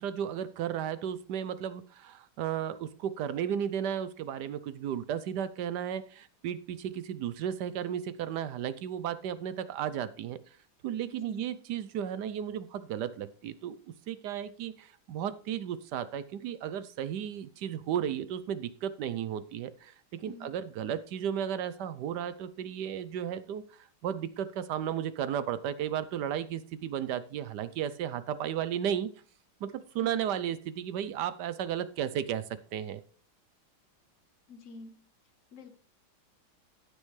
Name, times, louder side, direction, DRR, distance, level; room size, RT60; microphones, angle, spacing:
voice 1, 0.0-10.4 10.8-13.8 14.1-29.1 29.6-33.0, right 9 dB, 70° right, 15 dB, 1.0 m, -34 dB
voice 2, 11.1-11.4 20.2-20.5 30.0-30.2 34.5-35.0 35.5-35.7, left 3 dB, 50° left, 10 dB, 1.0 m, -48 dB
15.5 x 6.5 x 3.2 m, 0.39 s
omnidirectional pair, 2.3 m